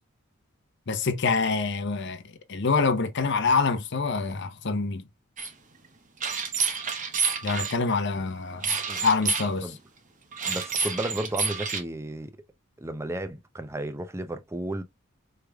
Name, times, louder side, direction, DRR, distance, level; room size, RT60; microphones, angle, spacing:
voice 1, 0.9-2.2 2.5-5.0 7.4-8.7 9.0-9.7, left 4 dB, 60° left, 0.7 m, -26 dB
sound 1, 5.4-5.5 6.2-7.7 8.6-9.5 10.3-11.8, right 5 dB, 40° right, 0.8 m, -28 dB
voice 2, 10.5-12.3 12.8-14.8, right 1 dB, 15° right, 0.5 m, -33 dB
4.8 x 3.2 x 2.2 m
head